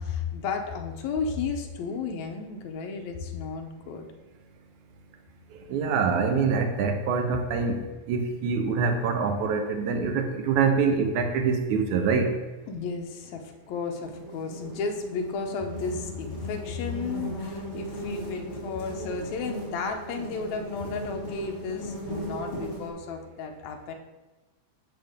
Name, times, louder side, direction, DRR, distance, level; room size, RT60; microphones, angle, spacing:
voice 1, 0.0-4.1 12.7-23.9, left 5 dB, 75° left, 4 dB, 2.2 m, -33 dB
voice 2, 5.7-12.3, right 5 dB, 90° right, 5 dB, 2.4 m, -25 dB
sound 1, 13.7-22.9, right 1 dB, 45° left, 3.2 m, -37 dB
14.5 x 5.8 x 3.6 m, 1.1 s
omnidirectional pair, 3.3 m